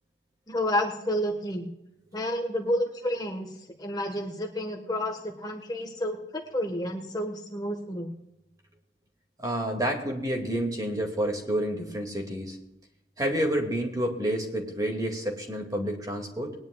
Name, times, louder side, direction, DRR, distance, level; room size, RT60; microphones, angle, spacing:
voice 1, 0.5-1.7 2.1-8.1, left 1 dB, 20° left, 2 dB, 1.4 m, -30 dB
voice 2, 9.4-12.6 13.2-16.5, right 1 dB, 20° right, 1 dB, 2.2 m, -29 dB
21.0 x 10.5 x 2.4 m, 0.90 s
head